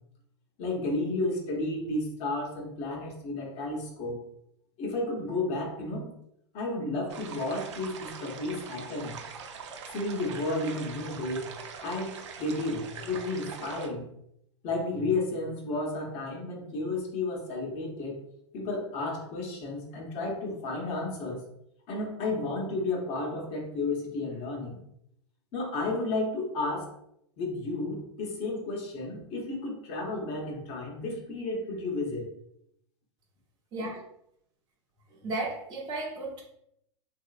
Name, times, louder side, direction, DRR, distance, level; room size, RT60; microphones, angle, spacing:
voice 1, 0.6-4.3 4.8-6.2 6.5-9.2 9.9-11.5 11.8-14.1 14.6-18.2 18.5-21.4 21.9-24.8 25.5-26.9 27.4-32.3, left 2 dB, 40° left, 0 dB, 1.0 m, -32 dB
sound 1, 7.1-13.9, right 6 dB, 70° right, 0.6 m, -43 dB
voice 2, 35.1-36.4, right 2 dB, 30° right, -5 dB, 0.7 m, -34 dB
3.0 x 2.8 x 2.4 m, 0.75 s
hypercardioid pair, 105°, 16 cm